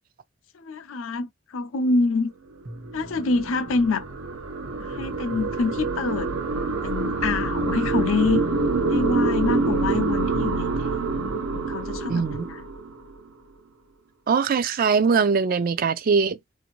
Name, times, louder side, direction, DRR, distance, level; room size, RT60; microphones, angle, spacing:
voice 1, 0.5-2.3 2.9-4.1 4.8-8.4 8.9-12.6, left 3 dB, 80° left, 0.5 m, -26 dB
sound 1, 2.6-8.0, right 1 dB, 65° right, 1.2 m, -45 dB
sound 2, 2.6-13.2, right 3 dB, 90° right, 0.6 m, -26 dB
voice 2, 12.1-12.5 14.3-16.4, right 5 dB, 45° right, 0.3 m, -21 dB
2.6 x 2.5 x 3.0 m
head